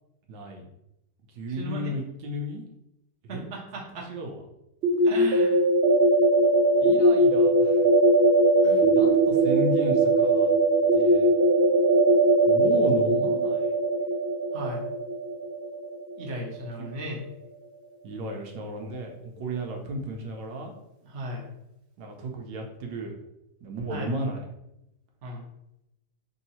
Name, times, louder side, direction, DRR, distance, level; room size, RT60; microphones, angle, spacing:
voice 1, 0.3-0.6 1.3-2.6 3.2-3.5 4.1-4.4 6.8-7.9 8.8-10.5 10.9-11.3 12.5-13.7 16.8-16.9 18.0-20.7 22.0-23.2 23.6-24.5, equal, 90° right, 2 dB, 1.4 m, -34 dB
voice 2, 1.5-1.9 3.3-4.1 5.0-5.6 8.6-8.8 14.5-14.9 16.2-17.2 21.0-21.5 23.9-24.1 25.2-25.5, right 1 dB, 45° right, -3 dB, 1.1 m, -36 dB
sound 1, 4.8-16.5, right 2 dB, 70° right, 0.6 m, -21 dB
3.6 x 2.7 x 4.2 m, 0.85 s
omnidirectional pair, 1.9 m